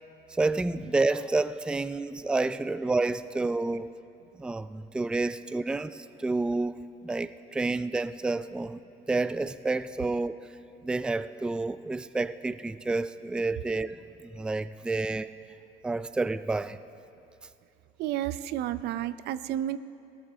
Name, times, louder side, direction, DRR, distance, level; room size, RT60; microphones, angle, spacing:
voice 1, 0.3-3.9 4.4-6.8 7.0-8.8 9.1-10.4 10.8-15.3 15.8-16.8, right 3 dB, 5° right, 0.3 m, -29 dB
voice 2, 18.0-19.8, right 12 dB, 75° right, 0.5 m, -31 dB
21.0 x 17.5 x 3.5 m
cardioid pair, 110°, 17 cm